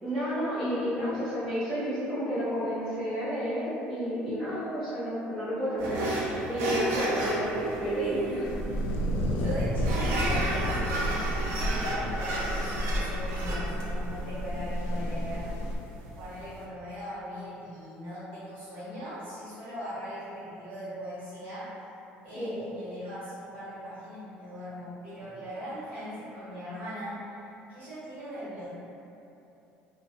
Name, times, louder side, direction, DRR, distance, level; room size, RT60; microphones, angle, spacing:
voice 1, 0.0-8.4 22.4-22.6, equal, 5° right, -16 dB, 0.7 m, -31 dB
sound 1, 5.8-16.6, right 1 dB, 80° right, 0.4 m, -34 dB
voice 2, 8.0-8.9 9.4-15.4 16.1-21.7 22.2-27.4 27.7-28.8, equal, 50° right, -12 dB, 1.3 m, -39 dB
sound 2, 8.4-15.8, equal, 80° left, 0.3 m, -31 dB
2.5 x 2.1 x 2.7 m, 2.9 s
cardioid pair, 140°, 4 cm